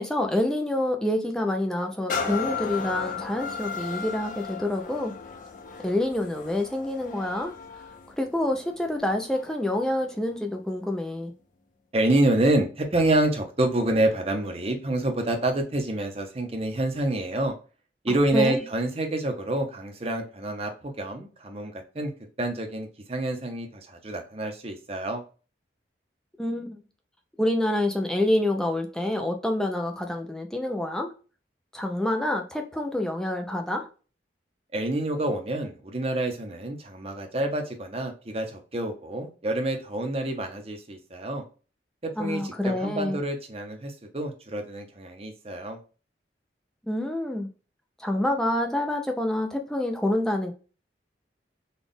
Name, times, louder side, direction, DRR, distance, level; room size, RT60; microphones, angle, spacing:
voice 1, 0.0-5.2 5.8-7.5 8.2-11.3 18.3-18.6 26.4-26.8 27.4-31.1 31.7-33.9 42.2-43.2 46.9-47.5 48.0-50.5, left 1 dB, 5° left, 3 dB, 0.5 m, -27 dB
sound 1, 2.1-9.7 10.3-10.4, left 5 dB, 45° left, 0.6 m, -35 dB
voice 2, 11.9-17.6 18.0-22.1 22.4-25.2 34.7-41.4 42.0-45.8, right 1 dB, 35° right, 4 dB, 0.8 m, -27 dB
4.0 x 2.4 x 3.4 m, 0.35 s
head